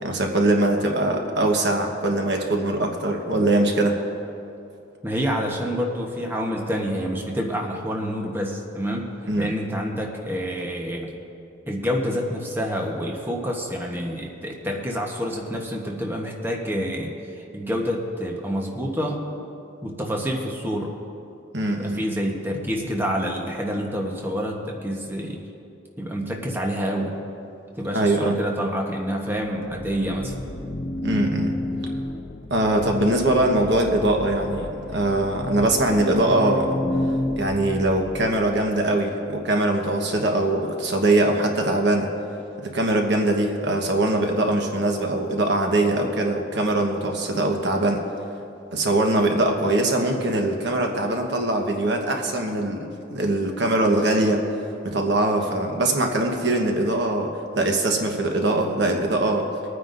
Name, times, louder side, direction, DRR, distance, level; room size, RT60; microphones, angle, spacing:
voice 1, 0.0-4.0 9.3-9.5 21.5-22.0 27.9-28.3 31.0-31.6 32.5-36.7 37.3-42.1 42.6-48.0 48.7-54.4 54.8-59.5, right 1 dB, 65° right, 2 dB, 1.2 m, -22 dB
voice 2, 5.0-9.1 9.4-11.1 11.7-19.2 19.8-21.0 21.7-25.4 26.0-27.2 27.8-30.4, equal, 10° right, -1 dB, 1.1 m, -27 dB
sound 1, 29.4-38.7, left 1 dB, 40° left, 0.6 m, -31 dB
24.5 x 9.4 x 2.6 m, 2.6 s
head